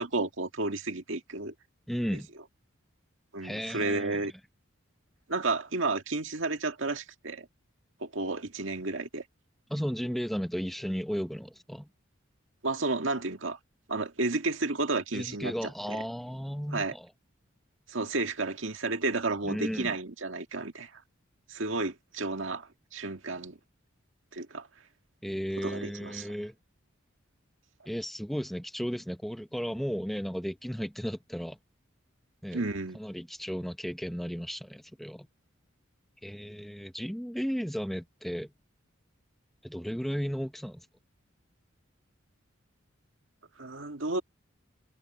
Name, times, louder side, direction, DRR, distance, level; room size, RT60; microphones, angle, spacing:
voice 1, 0.0-1.5 2.1-2.2 3.3-4.3 5.3-7.5 8.0-9.2 12.6-13.6 13.9-16.0 16.7-16.9 17.9-21.0 21.5-23.6 24.3-24.7 25.6-26.3 32.5-33.0 43.6-44.2, right 3 dB, 70° right, 1.9 m, -32 dB
voice 2, 1.9-2.3 3.4-4.2 9.7-11.9 15.1-17.1 19.4-19.9 25.2-26.5 27.9-31.6 32.4-32.6 32.9-35.3 36.2-38.5 39.6-40.9, equal, ahead, 0.8 m, -34 dB
head